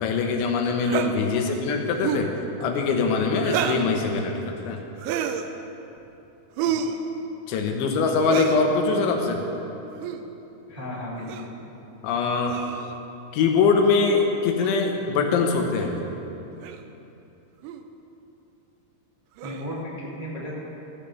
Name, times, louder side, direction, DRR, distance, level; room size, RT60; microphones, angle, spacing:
voice 1, 0.0-2.3 2.6-4.8 7.5-9.4 12.0-12.5 13.3-16.0, left 4 dB, 85° left, 2 dB, 3.5 m, -23 dB
sound 1, 0.9-1.1 2.0-2.3 3.4-3.9 5.0-5.5 6.6-7.0 8.2-8.6 9.9-10.2 11.3-11.5 12.5-13.0 14.6-14.8 15.8-15.9 16.6-16.8 17.6-17.8 19.4-19.8, right 8 dB, 90° right, 3.0 m, -29 dB
voice 2, 10.7-11.5 19.4-20.5, left 1 dB, 15° right, -8 dB, 1.2 m, -35 dB
15.5 x 15.0 x 3.5 m, 3.0 s
omnidirectional pair, 5.2 m